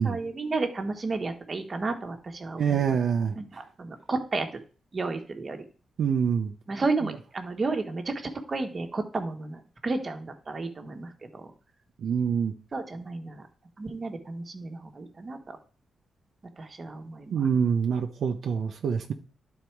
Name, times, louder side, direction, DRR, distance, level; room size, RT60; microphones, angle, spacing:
voice 1, 0.0-2.8 3.4-4.5 4.9-5.6 6.7-11.5 12.7-13.4 13.8-15.6 16.6-17.5, right 3 dB, 40° right, 5 dB, 1.2 m, -32 dB
voice 2, 2.6-3.4 6.0-6.5 12.0-12.5 17.3-19.1, right 7 dB, 75° right, 4 dB, 0.6 m, -25 dB
11.0 x 4.1 x 4.5 m, 0.39 s
cardioid pair, 95°, 0 cm